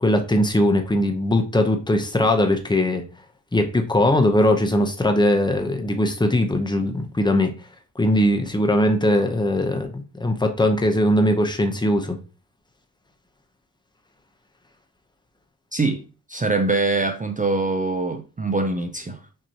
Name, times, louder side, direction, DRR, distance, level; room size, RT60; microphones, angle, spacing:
voice 1, 0.0-3.0 3.5-7.5 8.0-12.2, left 1 dB, 15° left, 0.7 m, -20 dB
voice 2, 16.3-19.2, right 3 dB, 25° right, 0.5 m, -23 dB
6.2 x 2.9 x 2.9 m
wide cardioid pair, 105°, 35 cm